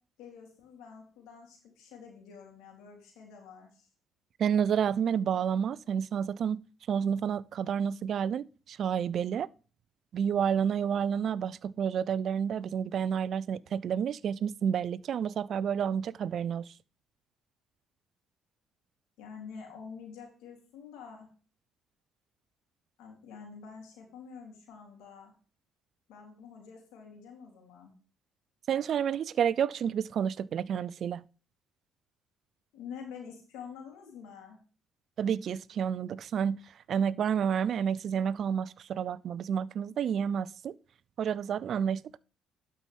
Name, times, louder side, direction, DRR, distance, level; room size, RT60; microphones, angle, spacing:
voice 1, 0.2-3.9 19.2-21.3 23.0-25.3 26.1-27.9 32.7-34.6, left 6 dB, 80° left, 3.3 m, -47 dB
voice 2, 4.4-6.6 6.9-9.5 10.1-16.7 28.7-31.2 35.2-36.6 36.9-40.7 41.2-42.2, right 8 dB, 60° right, 0.4 m, -30 dB
12.0 x 5.5 x 3.6 m
supercardioid pair, 65°, 0 cm